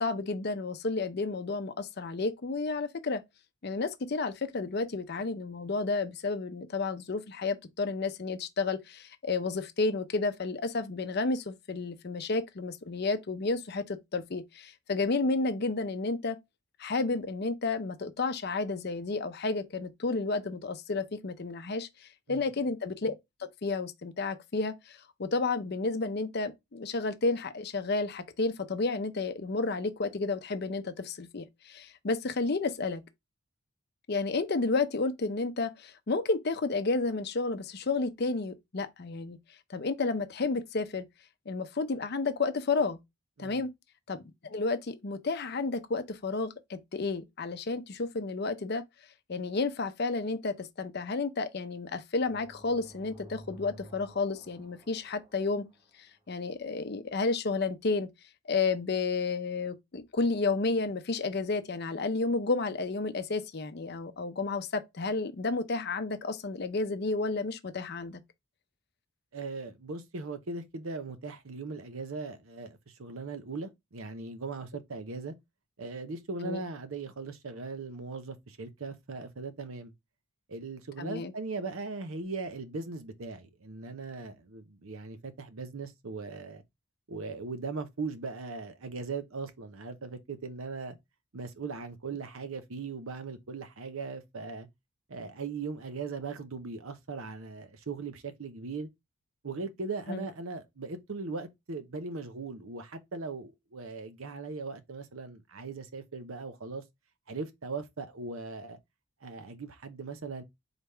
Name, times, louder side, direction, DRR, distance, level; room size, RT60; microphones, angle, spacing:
voice 1, 0.0-3.2 3.6-16.4 16.8-21.9 22.3-23.1 23.4-33.0 34.1-39.4 39.7-41.1 41.5-43.0 43.4-43.7 44.1-48.8 49.3-55.6 56.3-58.1 58.5-68.2 76.4-76.6 81.0-81.3 100.1-100.2, left 3 dB, 45° left, 0.5 m, -31 dB
sound 1, 52.3-56.1, right 1 dB, 25° right, 0.9 m, -52 dB
voice 2, 69.3-75.3 75.8-79.9 80.5-86.6 87.1-91.0 91.3-94.7 95.1-98.9 99.4-106.8 107.3-108.8 109.2-110.4, right 4 dB, 70° right, 0.7 m, -39 dB
4.0 x 3.4 x 3.3 m
head